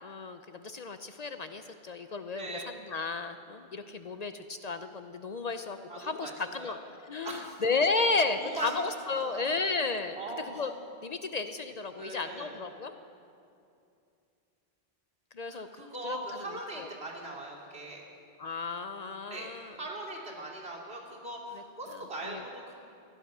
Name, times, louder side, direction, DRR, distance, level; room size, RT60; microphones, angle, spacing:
voice 1, 0.0-6.8 7.1-10.2 10.6-10.7 11.0-12.9 15.3-15.7 16.0-16.5 16.8-16.9 18.4-19.8 21.9-22.4, left 4 dB, 50° left, 9 dB, 0.5 m, -33 dB
voice 2, 2.3-2.7 5.9-6.7 7.2-7.5 8.3-8.8 9.2-9.4 10.2-10.6 12.0-12.6 15.5-18.0 19.3-22.8, right 2 dB, 85° right, -4 dB, 2.9 m, -40 dB
15.5 x 11.0 x 6.1 m, 2.6 s
omnidirectional pair, 1.0 m